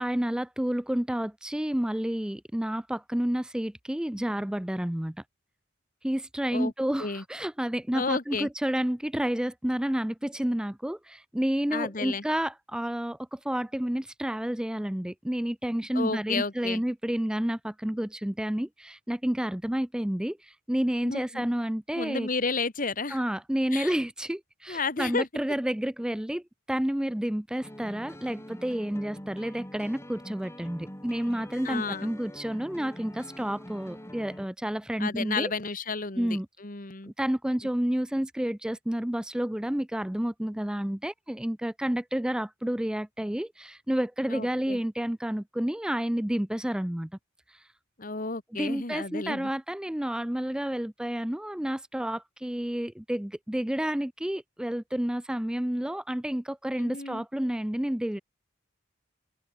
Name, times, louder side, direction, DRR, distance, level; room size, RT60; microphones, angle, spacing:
voice 1, 0.0-5.2 6.0-22.3 23.1-35.5 36.2-36.5 37.2-47.1 47.5-47.7 48.6-58.2, equal, 5° right, 0.4 m, -30 dB
voice 2, 7.9-8.5 11.7-12.2 15.9-16.8 21.0-21.5 21.9-23.2 23.7-23.9 24.7-25.3 31.6-32.1 35.0-37.1 44.3-44.8 48.0-49.5 56.8-57.2, left 4 dB, 45° left, 1.7 m, -32 dB
sound 1, 27.6-34.5, equal, 15° left, 5.9 m, -45 dB
head